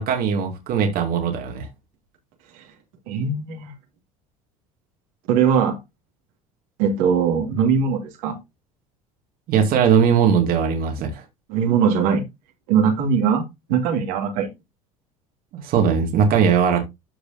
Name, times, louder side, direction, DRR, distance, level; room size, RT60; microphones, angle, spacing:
voice 1, 0.0-1.7 9.5-11.2 15.5-16.8, right 7 dB, 55° right, 2.6 m, -19 dB
voice 2, 3.1-3.7 5.3-5.8 6.8-8.4 11.5-12.2 12.7-13.4 13.7-14.5, right 7 dB, 70° right, 2.6 m, -20 dB
13.0 x 4.8 x 2.7 m
hypercardioid pair, 75°, 18 cm